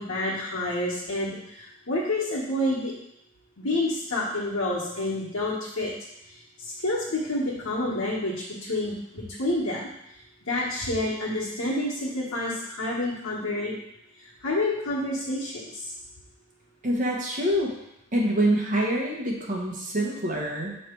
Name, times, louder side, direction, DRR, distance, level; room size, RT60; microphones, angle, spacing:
voice 1, 0.0-2.9 3.6-5.9 6.6-8.3 8.6-9.9 10.5-13.8 14.4-15.9, left 1 dB, 80° left, -8 dB, 1.3 m, -28 dB
voice 2, 16.8-17.7 18.1-20.8, right 1 dB, 40° right, -1 dB, 1.0 m, -25 dB
6.6 x 3.2 x 4.5 m, 0.81 s
head